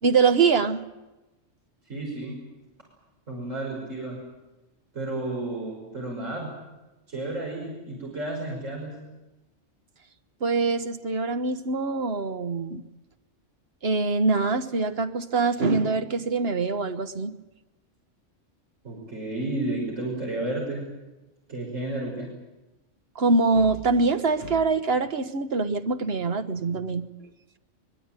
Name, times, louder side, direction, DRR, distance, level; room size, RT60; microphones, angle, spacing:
voice 1, 0.0-0.8 10.4-12.8 13.8-17.4 23.1-27.1, right 4 dB, 55° right, 1.4 m, -24 dB
voice 2, 1.9-2.3 3.3-4.2 4.9-6.5 7.1-8.9 18.8-20.8 21.5-22.3, right 2 dB, 90° right, 6.3 m, -32 dB
23.5 x 21.0 x 9.0 m
omnidirectional pair, 1.3 m